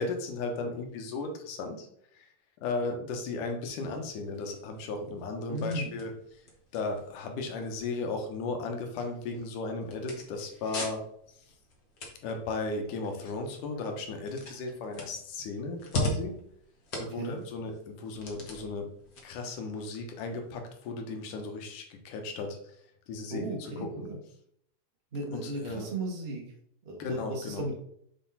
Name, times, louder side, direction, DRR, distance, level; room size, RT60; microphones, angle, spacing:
voice 1, 0.0-1.9 2.2-2.3 2.6-6.1 6.7-11.0 12.2-16.4 17.0-18.9 19.2-22.6 23.1-24.1 25.3-25.9 27.0-27.7, left 3 dB, 75° left, 4 dB, 2.6 m, -35 dB
sound 1, 3.6-20.6, left 1 dB, 55° left, 0.9 m, -42 dB
voice 2, 5.5-5.9 17.1-17.4 23.3-24.2 25.1-26.4 26.8-27.8, right 1 dB, 65° right, -2 dB, 0.6 m, -35 dB
7.3 x 4.1 x 4.2 m, 0.68 s
omnidirectional pair, 3.8 m